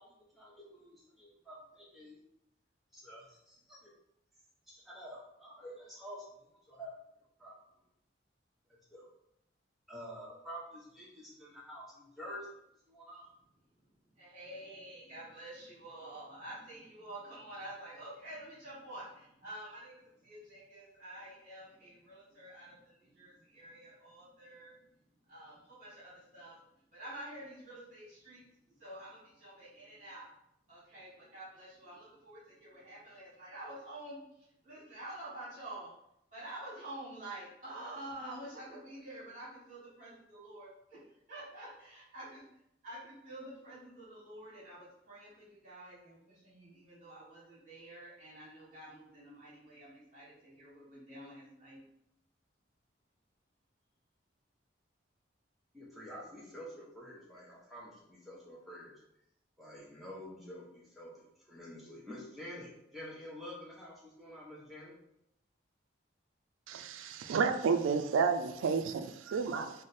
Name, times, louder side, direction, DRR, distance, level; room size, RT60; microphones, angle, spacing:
voice 1, 0.0-2.2 2.9-3.9 4.7-6.9 7.4-7.5 8.9-9.1 9.9-12.5 12.9-13.3 55.7-59.0 59.6-64.9, equal, ahead, -6 dB, 0.8 m, -48 dB
voice 2, 14.2-24.7 25.2-26.6 26.9-28.4 28.8-30.3 30.7-35.9 36.3-40.7 41.3-42.4 42.8-51.8, right 1 dB, 40° right, -8 dB, 1.2 m, -48 dB
voice 3, 66.7-69.8, right 5 dB, 85° right, 8 dB, 0.3 m, -31 dB
3.1 x 2.0 x 4.1 m, 0.78 s
head